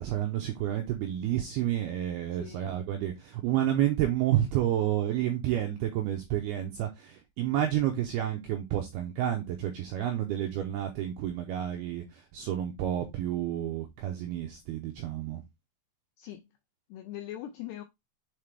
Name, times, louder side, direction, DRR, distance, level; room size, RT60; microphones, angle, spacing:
voice 1, 0.0-15.4, right 12 dB, 90° right, 2.2 m, -30 dB
voice 2, 16.9-17.8, left 12 dB, 85° left, 2.3 m, -41 dB
7.4 x 4.1 x 3.3 m
omnidirectional pair, 5.4 m